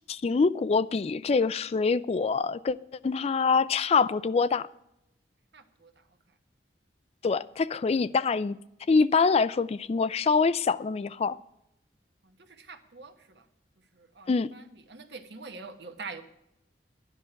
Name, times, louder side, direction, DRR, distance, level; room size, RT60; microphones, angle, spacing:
voice 1, 0.1-2.8 3.0-4.7 7.2-8.6 8.9-11.4 14.3-14.5, left 4 dB, 35° left, 0.3 m, -25 dB
voice 2, 5.5-5.9 12.6-13.1 14.2-14.6 14.9-16.2, right 4 dB, 70° right, 1.2 m, -43 dB
12.5 x 10.5 x 5.8 m
head